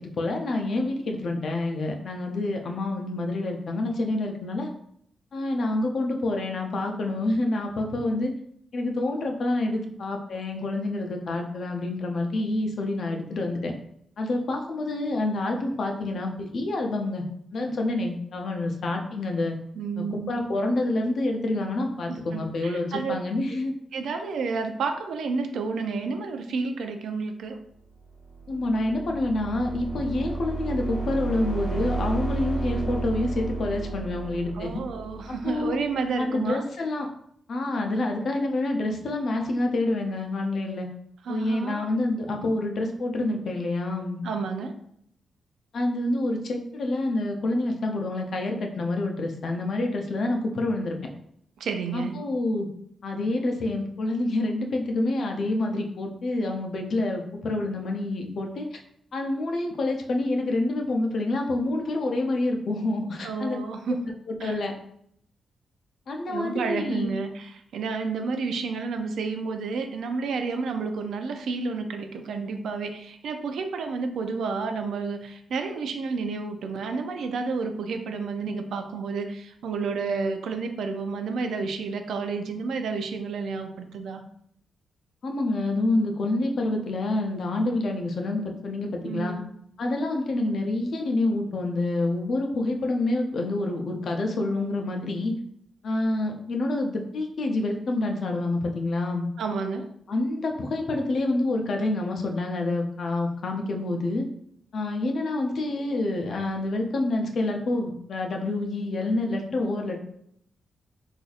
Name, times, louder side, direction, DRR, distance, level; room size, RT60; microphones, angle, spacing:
voice 1, 0.0-4.7 5.3-8.3 8.7-13.7 14.2-17.2 17.5-19.6 20.0-23.7 28.5-34.8 35.4-35.8 36.2-37.1 37.5-40.9 41.3-44.2 45.7-51.0 51.9-52.7 53.0-58.8 59.1-63.6 64.3-64.7 66.1-67.1 85.2-89.3 89.8-95.3 95.8-99.3 100.1-104.3 104.7-110.0, left 2 dB, 50° left, 3 dB, 0.5 m, -27 dB
voice 2, 19.8-20.4 22.1-23.1 23.9-27.6 34.5-36.6 41.3-41.9 44.2-44.7 51.6-52.1 63.2-64.1 64.4-64.6 66.3-84.2 89.0-89.4 99.4-99.9, right 4 dB, 85° right, 6 dB, 0.4 m, -30 dB
sound 1, 28.2-35.9, right 3 dB, 20° left, 0.8 m, -32 dB
4.0 x 2.5 x 2.4 m, 0.69 s
wide cardioid pair, 170°, 0 cm